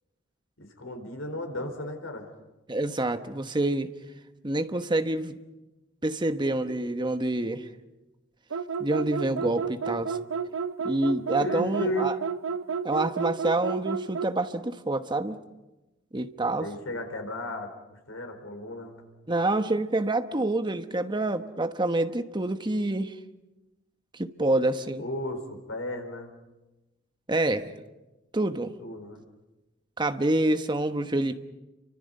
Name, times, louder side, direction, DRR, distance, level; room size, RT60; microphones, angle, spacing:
voice 1, 0.6-2.3 11.4-12.1 16.6-19.0 25.0-26.3 28.8-29.2, left 1 dB, 85° left, 5 dB, 4.4 m, -34 dB
voice 2, 2.7-3.9 4.4-5.4 6.0-7.7 8.8-10.2 10.8-12.2 12.8-15.4 16.1-16.7 19.3-23.1 24.1-25.0 27.3-27.7 28.3-28.7 30.0-31.4, right 2 dB, 25° right, 8 dB, 1.1 m, -27 dB
sound 1, 8.5-14.4, right 6 dB, 90° right, 0.8 m, -31 dB
29.5 x 25.0 x 5.5 m, 1.0 s
head